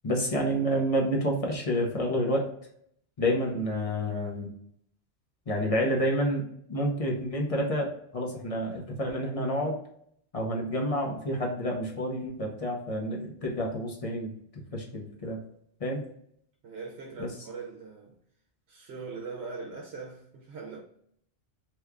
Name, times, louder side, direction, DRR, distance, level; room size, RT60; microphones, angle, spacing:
voice 1, 0.0-2.5 3.2-4.5 5.5-9.8 10.3-14.3 14.7-15.4 15.8-16.0 17.2-17.3, equal, 40° left, 0.7 m, -29 dB
voice 2, 16.6-18.1 18.7-20.8, right 4 dB, 80° right, 0.9 m, -41 dB
2.9 x 2.3 x 3.4 m
omnidirectional pair, 1.1 m